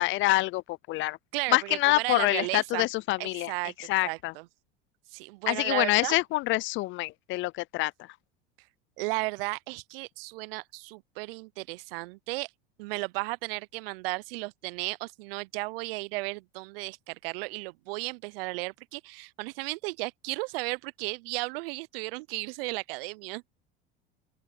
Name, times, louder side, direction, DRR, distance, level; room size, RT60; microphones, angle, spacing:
voice 1, 0.0-1.2 1.5-3.5 3.8-4.3 5.5-7.9, left 19 dB, 40° left, 0.4 m, -26 dB
voice 2, 1.3-2.9 3.2-3.7 4.0-4.4 5.1-6.2 9.0-12.5 12.8-23.4, right 24 dB, 70° right, 0.5 m, -34 dB
open air
hypercardioid pair, 90°, 30 cm